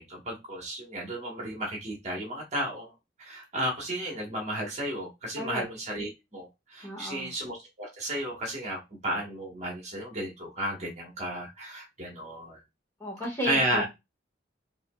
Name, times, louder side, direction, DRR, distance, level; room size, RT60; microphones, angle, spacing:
voice 1, 0.0-2.9 3.2-12.6 13.4-13.8, right 1 dB, 35° right, 1.4 m, -33 dB
voice 2, 6.8-7.4 13.0-13.9, left 1 dB, 15° left, 1.7 m, -34 dB
5.5 x 2.8 x 2.3 m
head